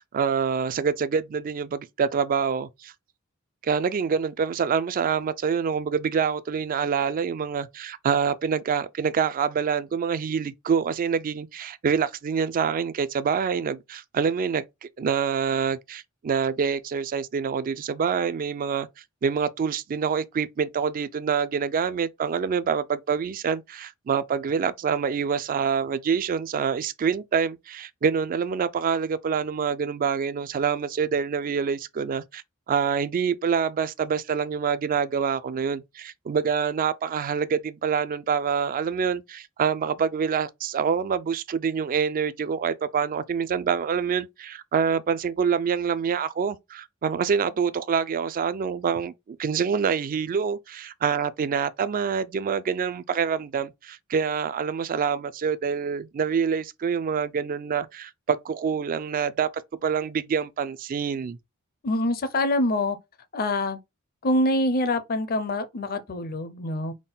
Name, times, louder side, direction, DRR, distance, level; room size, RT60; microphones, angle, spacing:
voice 1, 0.0-2.9 3.6-18.9 19.2-32.4 32.7-59.5 59.8-61.4, right 6 dB, 40° right, 0.3 m, -26 dB
voice 2, 61.8-63.0 63.3-63.8 64.2-66.9, left 1 dB, 45° left, 0.6 m, -25 dB
3.6 x 2.2 x 3.9 m
head